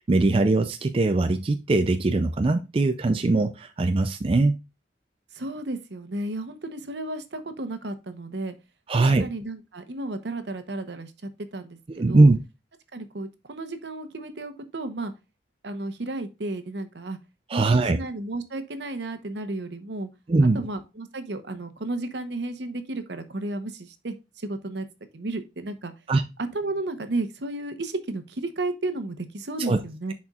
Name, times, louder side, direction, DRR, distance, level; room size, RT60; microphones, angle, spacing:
voice 1, 0.1-4.6 8.9-9.3 12.0-12.4 17.5-18.0 20.3-20.7 26.1-26.2 29.7-29.8, right 2 dB, 30° right, 0.4 m, -21 dB
voice 2, 5.3-8.5 8.9-11.1 11.5-12.3 12.9-15.1 15.6-17.2 17.5-20.1 20.5-24.9 25.1-25.9 26.5-30.1, right 2 dB, 70° right, 0.9 m, -33 dB
10.5 x 4.3 x 2.4 m
head